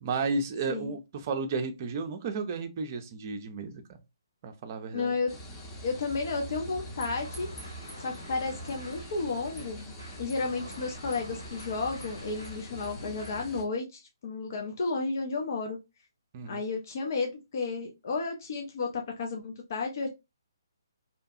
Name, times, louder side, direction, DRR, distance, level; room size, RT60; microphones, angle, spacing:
voice 1, 0.0-4.0 4.4-5.1 16.3-16.6, right 4 dB, 35° right, 0.5 m, -33 dB
voice 2, 4.9-5.3 5.8-7.5 8.0-9.9 10.2-15.8 16.4-20.1, left 4 dB, 50° left, 0.6 m, -32 dB
sound 1, 5.3-13.6, equal, 20° left, 0.8 m, -43 dB
sound 2, 7.2-13.5, equal, 85° left, 1.3 m, -48 dB
2.7 x 2.3 x 2.6 m
figure-of-eight pair, 135°, 2 cm